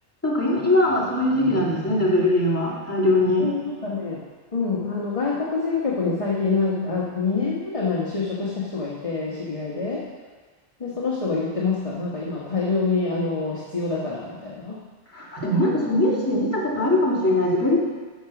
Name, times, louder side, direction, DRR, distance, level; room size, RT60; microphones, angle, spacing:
voice 1, 0.2-3.5 15.1-17.8, left 1 dB, 15° left, -7 dB, 2.5 m, -21 dB
voice 2, 3.4-4.2 4.5-10.1 10.8-14.8, left 4 dB, 30° left, -5 dB, 1.3 m, -26 dB
13.0 x 6.1 x 5.9 m, 1.4 s
omnidirectional pair, 1.1 m